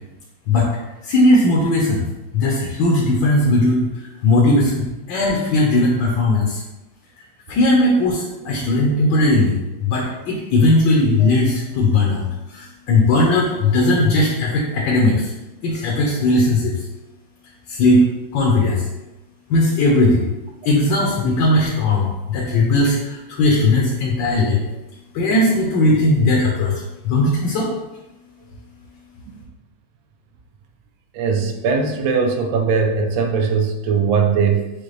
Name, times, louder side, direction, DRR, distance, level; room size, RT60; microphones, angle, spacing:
voice 1, 1.0-2.1 2.3-3.9 4.2-6.6 7.5-15.3 15.6-16.8 17.7-18.0 18.3-18.8 19.5-20.3 20.6-24.6 25.1-27.7, left 2 dB, 70° left, -2 dB, 1.4 m, -17 dB
voice 2, 31.1-34.7, right 5 dB, 80° right, 3 dB, 1.3 m, -20 dB
6.4 x 2.3 x 3.1 m, 1.0 s
omnidirectional pair, 2.2 m